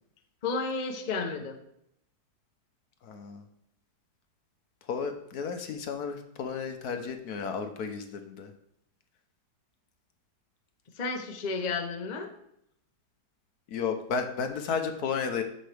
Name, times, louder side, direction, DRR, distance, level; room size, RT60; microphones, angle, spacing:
voice 1, 0.4-1.6 11.0-12.3, left 4 dB, 35° left, 5 dB, 0.7 m, -32 dB
voice 2, 3.0-3.4 4.8-8.5 13.7-15.4, left 6 dB, 65° left, 7 dB, 1.3 m, -33 dB
14.0 x 5.5 x 3.4 m, 0.75 s
omnidirectional pair, 1.8 m